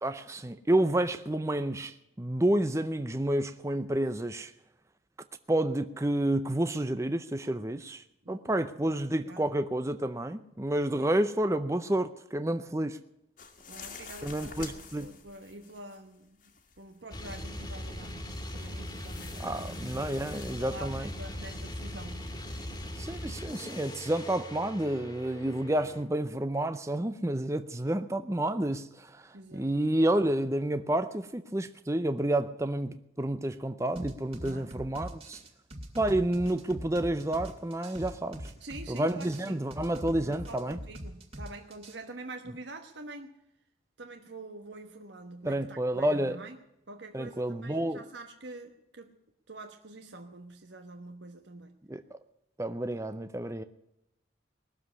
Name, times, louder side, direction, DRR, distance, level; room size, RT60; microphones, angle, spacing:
voice 1, 0.0-4.5 5.5-13.0 14.2-15.1 19.4-21.1 23.0-35.4 36.0-38.5 38.9-40.8 45.4-46.4 47.1-48.0 51.9-52.2 52.6-53.6, right 1 dB, 15° right, 0.6 m, -30 dB
voice 2, 8.2-8.7 9.1-9.5 11.0-11.1 13.7-16.4 16.8-18.2 18.5-22.3 25.8-25.9 29.3-29.7 34.4-34.7 38.6-39.6 40.2-43.4 44.0-46.6 46.9-49.2 49.5-51.8, right 2 dB, 70° right, 1.2 m, -46 dB
sound 1, 13.4-16.1 16.4-17.1 18.6-20.5, left 5 dB, 45° left, 1.8 m, -48 dB
sound 2, 17.1-26.0, left 1 dB, 20° left, 1.9 m, -40 dB
sound 3, 34.0-42.0, equal, 30° right, 2.5 m, -42 dB
20.0 x 7.5 x 9.7 m
head